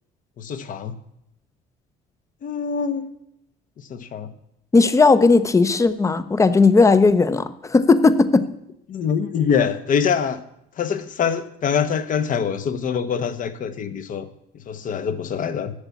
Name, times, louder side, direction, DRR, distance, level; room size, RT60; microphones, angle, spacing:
voice 1, 0.4-1.0 2.4-3.1 3.8-4.3 8.9-10.4 10.8-14.3 14.7-15.7, left 7 dB, 50° left, 10 dB, 1.0 m, -24 dB
voice 2, 4.7-8.4, left 4 dB, 20° left, 14 dB, 0.6 m, -16 dB
8.0 x 7.0 x 8.3 m, 0.77 s
cardioid pair, 110°, 17 cm